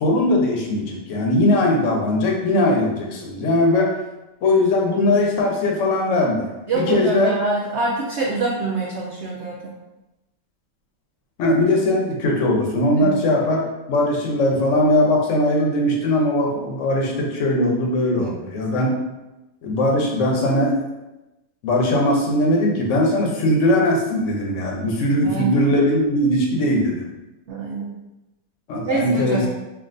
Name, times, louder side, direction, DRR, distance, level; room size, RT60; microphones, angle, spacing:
voice 1, 0.0-3.9 4.4-6.5 6.7-7.4 11.4-18.9 19.6-20.8 21.6-27.0 28.7-29.5, left 1 dB, 55° left, 0 dB, 0.9 m, -20 dB
voice 2, 6.7-9.7 13.0-13.2 18.2-18.5 25.2-25.6 27.5-27.9 28.9-29.5, right 3 dB, 70° right, -4 dB, 0.6 m, -25 dB
5.8 x 2.5 x 2.6 m, 1.0 s
omnidirectional pair, 1.9 m